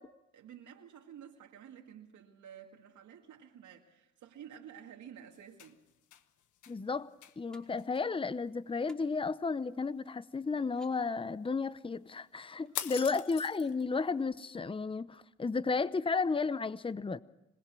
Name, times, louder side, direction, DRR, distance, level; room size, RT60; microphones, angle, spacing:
voice 1, 0.3-5.8 12.7-13.2, right 9 dB, 75° right, 2.1 m, -52 dB
sound 1, 5.3-6.2 6.6-6.8 7.2-7.4 7.8-8.0 12.7-13.8, left 10 dB, 75° left, 1.4 m, -41 dB
voice 2, 6.7-7.1 7.4-17.2, left 4 dB, 15° left, 0.8 m, -33 dB
sound 2, 7.5-7.6 8.9-9.0 9.8-9.9 10.6-10.9 12.6-13.0, right 1 dB, ahead, 4.8 m, -61 dB
26.5 x 20.5 x 6.2 m
cardioid pair, 90°, 30 cm